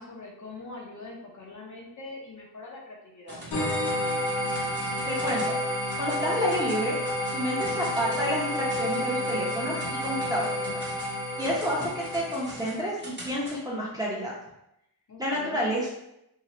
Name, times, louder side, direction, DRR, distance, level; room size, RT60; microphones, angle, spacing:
voice 1, 0.0-3.4 7.6-7.8 10.4-10.7 15.1-15.7, left 3 dB, 45° left, -3 dB, 0.8 m, -43 dB
sound 1, 3.3-5.6 5.9-6.2 6.5-13.6, right 1 dB, 30° right, 1.2 m, -44 dB
sound 2, 3.5-12.9, left 1 dB, 75° left, 1.1 m, -30 dB
voice 2, 5.1-5.6 6.0-7.0 7.3-9.8 10.0-10.6 11.4-14.3 15.2-15.9, equal, 10° right, -5 dB, 0.9 m, -29 dB
2.8 x 2.2 x 3.0 m, 0.82 s
cardioid pair, 80°, 40 cm